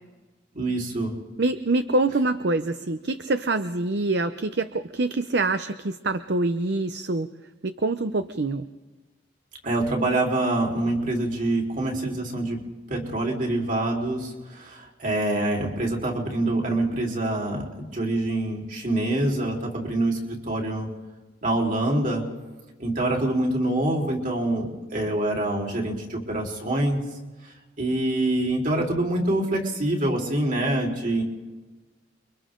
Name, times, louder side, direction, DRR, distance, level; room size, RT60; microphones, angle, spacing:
voice 1, 0.5-1.1 9.6-12.6 12.9-20.9 21.4-22.2 22.8-27.0 27.8-31.2, right 1 dB, 45° right, 0 dB, 4.0 m, -25 dB
voice 2, 1.4-7.3 7.6-8.7, right 2 dB, 60° right, 10 dB, 0.7 m, -25 dB
29.5 x 24.0 x 3.8 m, 1.2 s
head